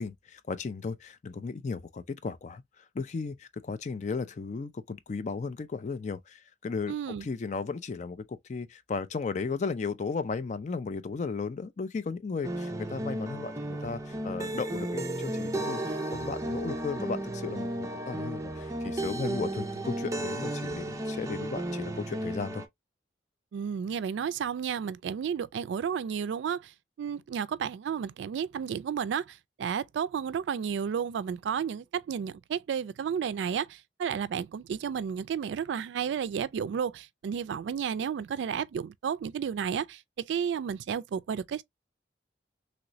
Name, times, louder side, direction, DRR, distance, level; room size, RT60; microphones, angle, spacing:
voice 1, 0.0-22.6, left 4 dB, 40° left, 0.4 m, -35 dB
voice 2, 6.9-7.3 23.5-41.6, right 7 dB, 80° right, 0.3 m, -32 dB
sound 1, 12.4-22.7, right 1 dB, 20° right, 0.5 m, -34 dB
3.1 x 3.0 x 2.6 m
head